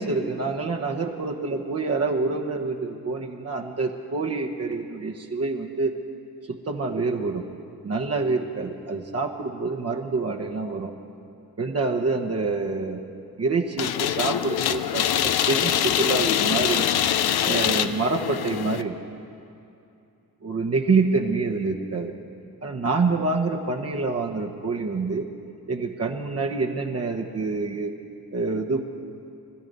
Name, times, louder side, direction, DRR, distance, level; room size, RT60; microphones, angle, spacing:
voice 1, 0.0-5.9 6.5-7.4 7.8-10.9 11.6-13.0 13.4-16.9 17.4-18.9 20.4-22.1 22.6-25.3 25.7-27.9 28.3-28.8, right 3 dB, 40° right, 1 dB, 1.1 m, -26 dB
sound 1, 13.8-18.8, left 10 dB, 85° left, 0.6 m, -24 dB
20.5 x 13.0 x 5.4 m, 2.6 s
cardioid pair, 100°, 37 cm